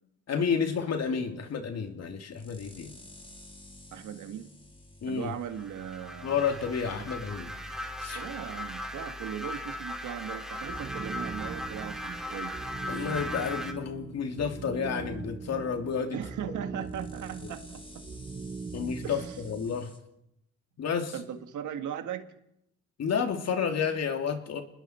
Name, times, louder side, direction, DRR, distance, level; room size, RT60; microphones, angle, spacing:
voice 1, 0.3-3.0 5.0-5.3 6.2-7.5 8.0-8.2 12.9-16.2 17.4-17.5 18.7-19.9 20.8-21.1 23.0-24.6, left 6 dB, 55° left, 5 dB, 2.8 m, -30 dB
sound 1, 0.7-20.0, left 2 dB, 15° left, 3.1 m, -52 dB
voice 2, 3.9-4.5 5.1-6.4 6.9-7.0 8.1-12.6 16.1-18.0 19.0-19.4 21.1-22.3, right 9 dB, 75° right, 7 dB, 1.9 m, -38 dB
sound 2, 5.4-13.7, left 1 dB, ahead, 2.7 m, -38 dB
sound 3, 10.6-19.9, right 4 dB, 25° right, 1.1 m, -41 dB
28.5 x 20.5 x 4.5 m, 0.80 s
cardioid pair, 90°, 30 cm